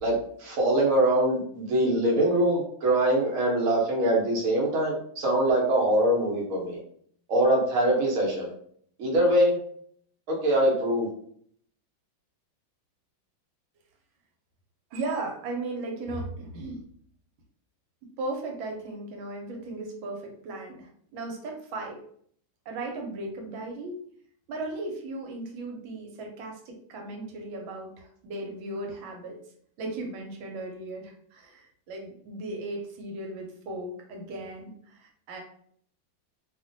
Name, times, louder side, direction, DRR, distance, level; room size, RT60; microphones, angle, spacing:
voice 1, 0.0-6.8 7.3-8.5 9.0-9.6 10.3-11.1, right 1 dB, 55° right, -2 dB, 1.0 m, -23 dB
voice 2, 14.9-16.8 18.2-22.0 22.7-24.0 24.5-29.4 29.8-35.4, right 2 dB, 85° right, 2 dB, 1.4 m, -36 dB
2.9 x 2.5 x 2.5 m, 0.62 s
omnidirectional pair, 2.1 m